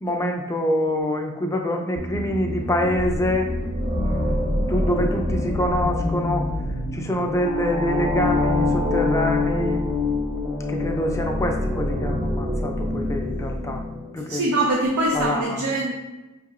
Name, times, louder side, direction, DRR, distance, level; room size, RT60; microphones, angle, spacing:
voice 1, 0.0-3.5 4.0-6.5 6.9-9.8 10.7-13.8 14.1-14.5 15.1-15.6, left 1 dB, 15° left, 2 dB, 0.3 m, -25 dB
sound 1, 2.0-7.3, left 1 dB, 70° left, 0.6 m, -30 dB
sound 2, 3.2-14.4, left 2 dB, 60° right, 1.1 m, -26 dB
voice 2, 14.3-15.9, right 2 dB, 85° right, -2 dB, 0.6 m, -23 dB
5.3 x 2.7 x 2.4 m, 1.1 s
head